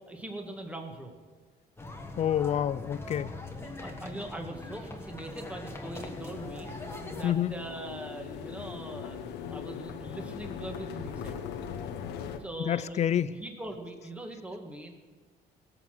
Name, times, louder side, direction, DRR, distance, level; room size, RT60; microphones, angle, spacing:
voice 1, 0.1-1.1 3.5-6.7 7.1-9.2 9.5-11.4 12.4-14.9, right 1 dB, 10° right, 3 dB, 1.9 m, -41 dB
sound 1, 1.8-7.2, left 2 dB, 15° left, 1.5 m, -42 dB
voice 2, 2.2-3.3 7.2-7.6 12.6-13.4, left 10 dB, 40° left, 18 dB, 0.5 m, -28 dB
sound 2, 5.8-12.4, left 7 dB, 85° left, 1.1 m, -40 dB
17.5 x 7.1 x 6.1 m, 1.5 s
cardioid pair, 110°, 17 cm